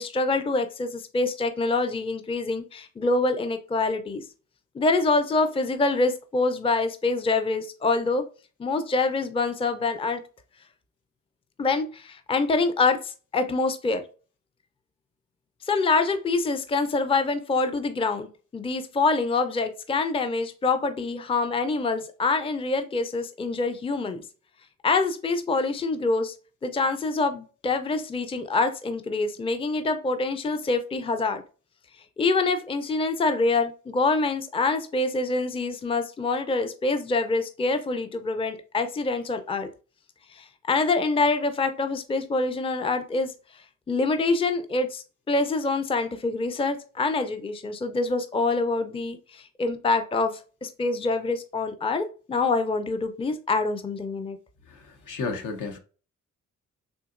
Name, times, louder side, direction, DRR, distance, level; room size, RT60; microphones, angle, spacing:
voice 1, 0.0-4.3 4.7-8.3 8.6-10.2 11.6-14.0 15.7-24.2 24.8-26.3 26.6-31.4 32.2-39.7 40.3-43.3 43.9-54.4, left 3 dB, 20° left, 0.4 m, -25 dB
voice 2, 54.7-55.8, left 4 dB, 70° left, 0.8 m, -33 dB
3.8 x 2.8 x 2.5 m
cardioid pair, 65°, 32 cm